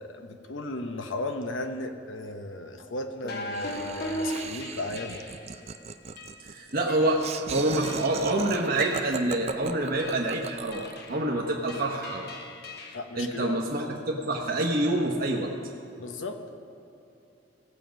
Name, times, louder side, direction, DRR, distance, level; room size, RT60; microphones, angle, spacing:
voice 1, 0.0-5.3 12.9-13.8 16.0-16.4, left 2 dB, 90° left, 6 dB, 1.0 m, -36 dB
sound 1, 3.2-5.5 6.2-6.4 6.9-7.4 7.8-8.3 8.8-9.4 10.0-10.3 10.7-11.3 11.7-13.0, left 1 dB, 55° left, 1.2 m, -37 dB
Laughter, 3.5-11.1, right 5 dB, 35° right, 0.4 m, -38 dB
voice 2, 6.4-7.2 7.5-10.8 11.1-12.3 13.2-15.5, right 1 dB, 50° right, -1 dB, 1.0 m, -27 dB
17.0 x 7.5 x 5.2 m, 2.9 s
head